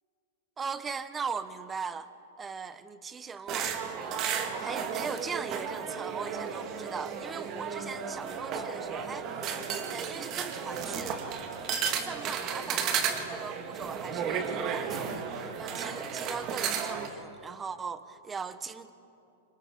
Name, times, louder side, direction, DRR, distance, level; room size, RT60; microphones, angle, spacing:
voice 1, 0.6-2.1 2.4-9.3 9.9-11.4 11.9-18.9, right 5 dB, 20° right, 13 dB, 1.0 m, -39 dB
sound 1, 3.5-17.1, right 7 dB, 35° right, 1.9 m, -34 dB
29.0 x 26.0 x 3.8 m, 2.8 s
figure-of-eight pair, 105°, 0 cm